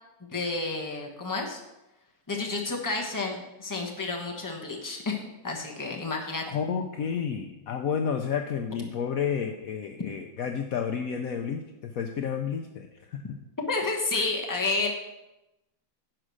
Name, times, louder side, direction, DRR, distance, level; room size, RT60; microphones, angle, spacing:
voice 1, 0.3-1.6 2.3-6.4 13.7-14.9, left 3 dB, 15° left, 1 dB, 0.9 m, -30 dB
voice 2, 6.5-13.2, left 7 dB, 80° left, 4 dB, 0.7 m, -31 dB
11.0 x 5.0 x 6.3 m, 0.96 s
omnidirectional pair, 2.2 m